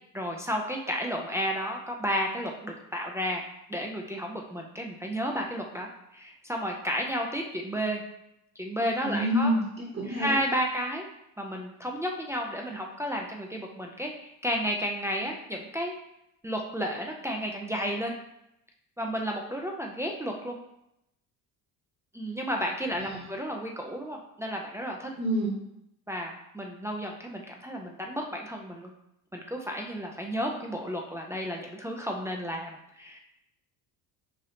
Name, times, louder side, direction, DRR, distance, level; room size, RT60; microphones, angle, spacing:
voice 1, 0.1-8.0 8.6-9.5 10.0-11.1 11.4-15.9 16.4-18.1 19.0-20.6 22.1-25.1 26.1-28.9 29.3-33.2, equal, 10° right, 0 dB, 0.3 m, -32 dB
voice 2, 9.0-10.4 23.0-23.2 25.2-25.5, equal, 30° right, -3 dB, 1.1 m, -28 dB
5.0 x 2.6 x 2.8 m, 0.81 s
cardioid pair, 110°, 38 cm